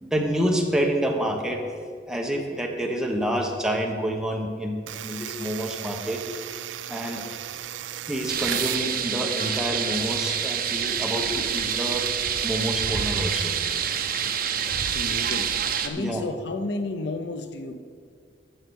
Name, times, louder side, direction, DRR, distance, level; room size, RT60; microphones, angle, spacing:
voice 1, 0.0-1.6 2.1-6.2 6.9-7.2 8.1-12.0 12.4-13.5 16.0-16.2, equal, 5° right, 1 dB, 1.1 m, -28 dB
sound 1, 4.9-8.9, right 11 dB, 90° right, 0.4 m, -35 dB
sound 2, 8.3-15.9, right 8 dB, 55° right, 0.7 m, -27 dB
voice 2, 14.8-17.8, left 2 dB, 65° left, 9 dB, 0.7 m, -32 dB
11.5 x 6.7 x 6.3 m, 2.1 s
head